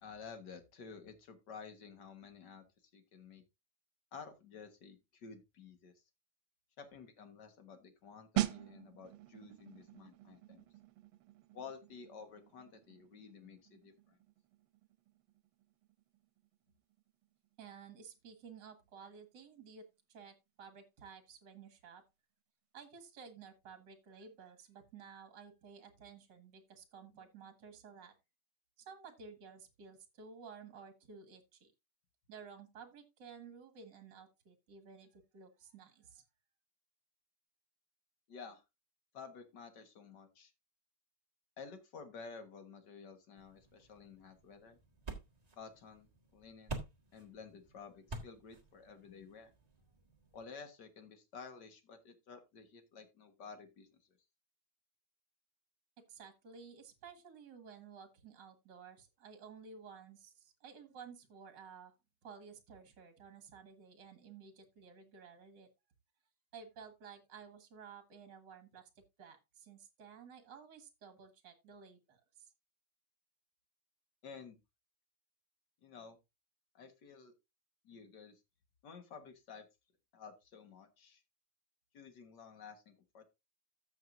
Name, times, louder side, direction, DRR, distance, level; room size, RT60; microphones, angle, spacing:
voice 1, 0.0-3.4 4.1-5.9 6.8-10.6 11.5-13.9 38.3-38.6 39.1-40.5 41.6-44.8 45.6-46.8 47.1-49.5 50.3-54.0 74.2-74.6 75.8-76.2 76.7-77.3 77.8-78.4 78.8-79.7 80.1-81.2 81.9-83.3, left 5 dB, 55° left, 8 dB, 2.0 m, -52 dB
sound 1, 8.4-18.9 19.1-19.4, right 15 dB, 85° right, 1.6 m, -44 dB
voice 2, 17.6-22.0 22.7-28.2 28.8-31.7 32.3-36.2 56.1-61.9 62.2-65.7 66.5-72.5, right 6 dB, 60° right, 7 dB, 2.3 m, -54 dB
sound 2, 43.4-50.4, right 2 dB, 20° right, 1.5 m, -50 dB
14.0 x 6.4 x 2.6 m, 0.23 s
omnidirectional pair, 2.3 m